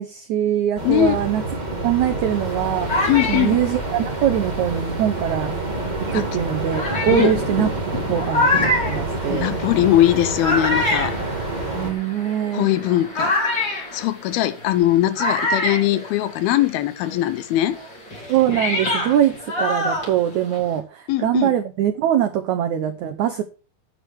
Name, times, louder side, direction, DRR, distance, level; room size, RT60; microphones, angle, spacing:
voice 1, 0.0-1.4 1.8-5.5 6.0-7.7 8.1-9.6 11.7-12.7 18.3-23.4, right 11 dB, 75° right, 1.8 m, -22 dB
voice 2, 0.8-1.2 3.1-3.6 6.1-6.3 7.1-7.4 9.2-11.2 12.5-13.4 13.7-17.8 21.1-21.5, left 13 dB, 80° left, 2.6 m, -20 dB
sound 1, 0.8-11.9, right 2 dB, 20° right, 1.2 m, -28 dB
sound 2, 2.4-5.4 6.1-6.2 6.7-16.7 17.0-20.8, left 2 dB, 30° left, 4.2 m, -26 dB
9.2 x 8.2 x 6.1 m
omnidirectional pair, 4.5 m